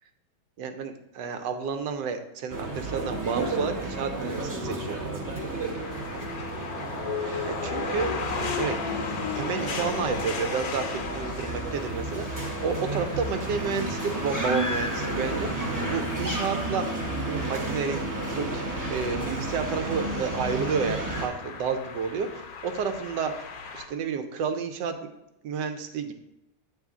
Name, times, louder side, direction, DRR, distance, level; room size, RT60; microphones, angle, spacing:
voice 1, 0.6-5.4 7.4-8.8 9.3-18.0 18.3-18.6 18.9-23.5 23.7-25.0 25.4-26.1, right 6 dB, 80° right, 7 dB, 1.3 m, -31 dB
sound 1, 2.5-21.3, right 2 dB, 20° right, 0.5 m, -32 dB
sound 2, 5.3-23.9, left 6 dB, 65° left, 1.1 m, -37 dB
8.2 x 3.5 x 3.6 m, 0.92 s
omnidirectional pair, 1.9 m